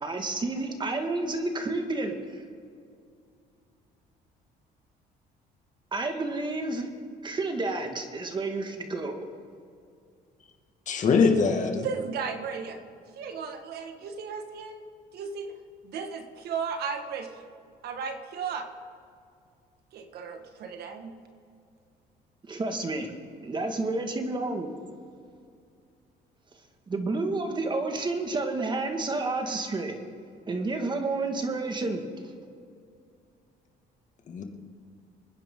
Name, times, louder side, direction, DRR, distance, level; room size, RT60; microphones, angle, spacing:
voice 1, 0.0-2.4 5.9-6.9 7.2-9.3 22.5-23.1 23.4-24.7 26.9-30.0 30.5-32.0, right 2 dB, 25° right, 5 dB, 1.8 m, -30 dB
voice 2, 10.9-11.9 34.3-34.4, left 5 dB, 45° left, 3 dB, 2.0 m, -22 dB
voice 3, 11.8-12.8 13.2-15.6 15.8-17.3 17.8-18.7 19.9-21.1, right 6 dB, 70° right, 6 dB, 1.7 m, -35 dB
26.0 x 10.0 x 3.8 m, 2.3 s
cardioid pair, 110°, 17 cm